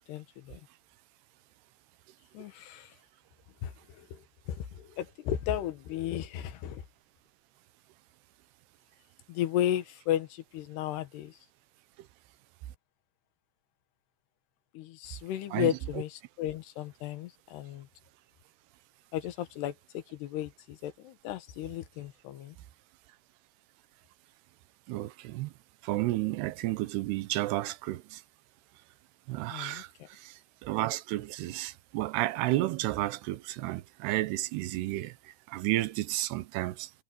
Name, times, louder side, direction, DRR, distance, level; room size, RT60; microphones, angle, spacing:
voice 1, 0.1-0.7 2.3-3.0 3.6-6.8 9.3-11.4 14.7-17.9 19.1-22.6 29.5-30.1, left 11 dB, 85° left, 3.4 m, -34 dB
voice 2, 24.9-25.5 25.8-28.2 29.3-36.9, right 17 dB, 85° right, 2.9 m, -32 dB
omnidirectional pair, 4.7 m